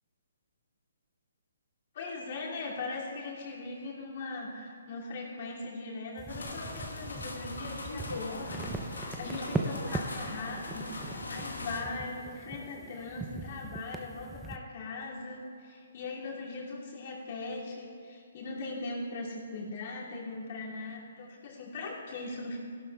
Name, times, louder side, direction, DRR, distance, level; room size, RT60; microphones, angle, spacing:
voice 1, 1.9-22.6, left 3 dB, 50° left, -4 dB, 2.5 m, -40 dB
sound 1, 6.2-14.6, right 3 dB, 5° right, 0.6 m, -40 dB
sound 2, 6.3-11.8, left 2 dB, 90° left, 1.3 m, -40 dB
16.0 x 11.5 x 2.3 m, 2.3 s
hypercardioid pair, 140°, 0 cm